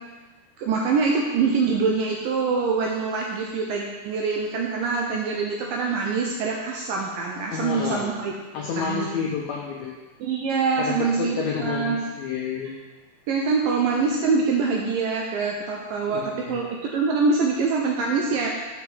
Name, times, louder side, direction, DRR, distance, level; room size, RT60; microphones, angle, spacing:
voice 1, 0.6-8.3 8.8-9.3 10.2-12.0 13.3-18.5, right 4 dB, 75° right, -1 dB, 2.2 m, -24 dB
voice 2, 7.5-8.1 8.5-9.9 10.8-12.7 16.1-16.6, left 6 dB, 80° left, -2 dB, 1.6 m, -29 dB
5.9 x 5.9 x 6.0 m, 1.3 s
omnidirectional pair, 4.4 m